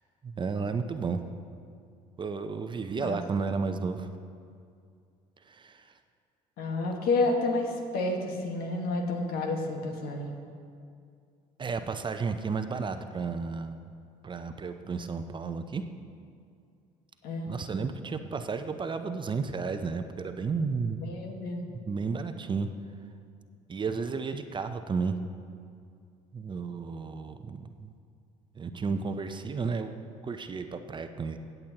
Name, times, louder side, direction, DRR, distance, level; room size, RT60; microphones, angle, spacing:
voice 1, 0.2-1.2 2.2-4.1 5.5-5.8 11.6-13.8 14.2-15.8 17.5-21.0 21.9-22.7 23.7-25.2 26.3-27.9 28.6-31.4, right 5 dB, 30° right, 8 dB, 0.6 m, -32 dB
voice 2, 6.6-10.4 17.2-17.5 21.0-21.6, left 2 dB, 70° left, 2 dB, 1.6 m, -30 dB
16.5 x 7.9 x 2.9 m, 2.3 s
supercardioid pair, 75°, 17 cm